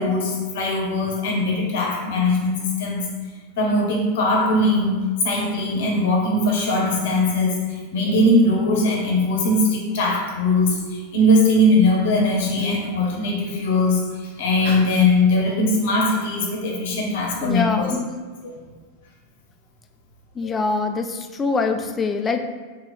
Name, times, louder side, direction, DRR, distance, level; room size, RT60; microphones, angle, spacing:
voice 1, 0.0-3.0 3.6-5.0 5.2-18.0 18.4-18.5 20.4-20.6, left 1 dB, 65° left, -1 dB, 0.9 m, -20 dB
voice 2, 17.4-18.1 20.4-22.4, left 4 dB, 25° left, 6 dB, 0.3 m, -24 dB
3.0 x 2.8 x 4.0 m, 1.4 s
hypercardioid pair, 90°, 0 cm